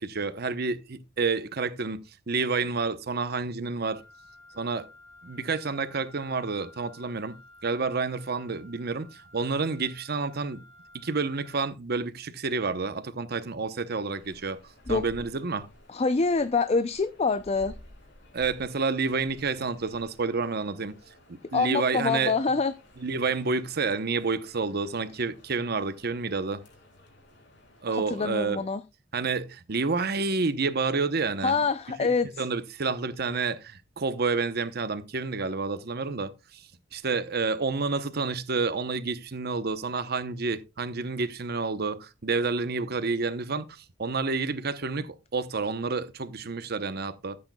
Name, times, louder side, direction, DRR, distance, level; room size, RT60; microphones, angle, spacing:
voice 1, 0.0-4.0 4.5-4.9 5.2-7.4 7.6-10.6 10.9-14.6 14.9-15.7 18.3-20.9 21.5-22.3 23.0-26.6 27.8-28.6 29.1-31.6 32.4-36.3 36.9-47.4, right 4 dB, 55° right, 0.8 m, -29 dB
Wind instrument woodwind instrument, 3.9-11.7, left 1 dB, 80° right, 2.0 m, -53 dB
sound 1, 14.1-28.0, left 1 dB, 65° left, 3.5 m, -53 dB
voice 2, 15.9-17.7 21.5-22.7 27.9-28.8 31.4-32.4, left 4 dB, 35° left, 0.5 m, -26 dB
14.5 x 8.7 x 2.3 m
head